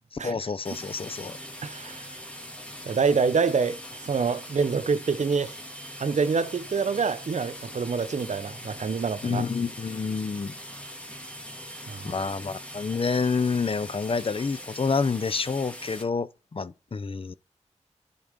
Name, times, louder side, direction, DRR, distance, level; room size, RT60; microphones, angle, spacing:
voice 1, 0.1-1.4 9.2-10.5 12.0-17.3, left 5 dB, 50° left, 0.6 m, -28 dB
sound 1, 0.6-16.0, equal, 10° left, 2.3 m, -42 dB
voice 2, 1.6-2.1 2.9-5.5 6.0-9.4 11.9-12.2, right 5 dB, 75° right, 0.7 m, -26 dB
11.0 x 4.1 x 5.1 m
wide cardioid pair, 60°, 12 cm